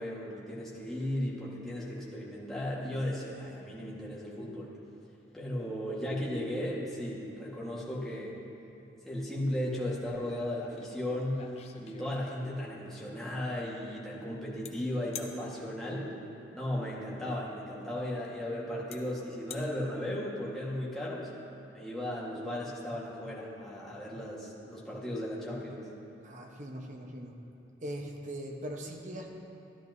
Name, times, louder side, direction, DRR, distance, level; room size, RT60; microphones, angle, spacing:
voice 1, 0.0-4.7 5.3-8.4 9.0-11.4 11.8-16.1 16.5-21.3 21.7-25.8, left 1 dB, ahead, -7 dB, 1.5 m, -36 dB
sound 1, 10.8-10.9 11.2-12.6 14.6-14.7 15.1-15.4 17.2-17.3 18.2-18.3 18.9-19.0 19.3-19.7, left 7 dB, 35° left, 0.5 m, -44 dB
voice 2, 26.2-27.4 27.8-29.3, right 1 dB, 40° right, 1 dB, 0.9 m, -40 dB
13.0 x 11.5 x 2.7 m, 2.8 s
head